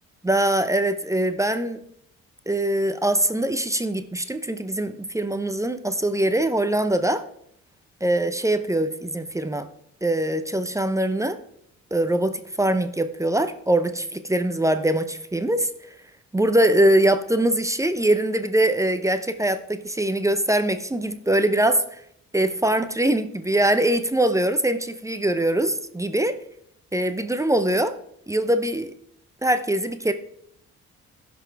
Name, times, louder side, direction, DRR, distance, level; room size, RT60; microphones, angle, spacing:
voice 1, 0.2-1.8 2.5-7.2 8.0-9.7 10.0-11.4 11.9-15.7 16.3-21.8 22.3-26.4 26.9-27.9 28.3-28.9 29.4-30.1, right 1 dB, 10° right, 9 dB, 0.6 m, -22 dB
15.5 x 6.1 x 3.4 m, 0.70 s
cardioid pair, 90°, 30 cm